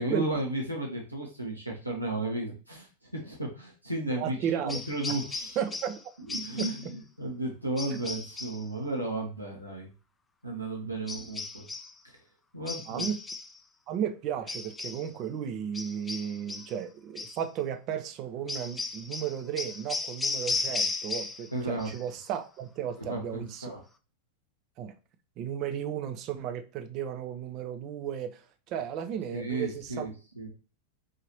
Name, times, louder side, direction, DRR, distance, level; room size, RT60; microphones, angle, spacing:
voice 1, 0.0-5.6 6.2-9.9 10.4-11.7 12.0-12.2 12.5-13.1 21.5-21.9 23.0-23.8 29.3-30.5, right 2 dB, 90° right, -2 dB, 1.2 m, -34 dB
voice 2, 4.2-4.8 5.6-6.0 6.6-6.7 10.8-10.9 12.9-13.2 13.9-23.7 24.8-24.9 25.4-30.1, right 9 dB, 40° right, 7 dB, 0.6 m, -34 dB
sound 1, 4.7-6.0 6.3-6.9 7.8-8.6 11.1-11.9 12.7-13.6 14.5-15.1 15.7-16.8 17.2-17.4 18.5-21.5 21.8-22.3, left 3 dB, 10° left, 0.4 m, -35 dB
5.0 x 2.8 x 2.9 m, 0.34 s
figure-of-eight pair, 90°, 0 cm